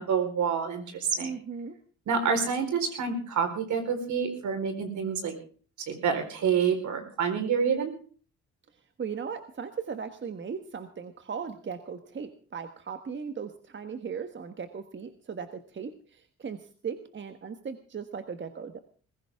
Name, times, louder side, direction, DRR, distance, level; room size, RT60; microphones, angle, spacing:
voice 1, 0.0-1.3 2.1-5.4 5.9-7.9, right 6 dB, 75° right, 6 dB, 4.3 m, -28 dB
voice 2, 1.2-1.7 9.0-18.8, right 6 dB, 40° right, 8 dB, 1.4 m, -37 dB
20.0 x 16.0 x 3.6 m, 0.42 s
cardioid pair, 90°, 30 cm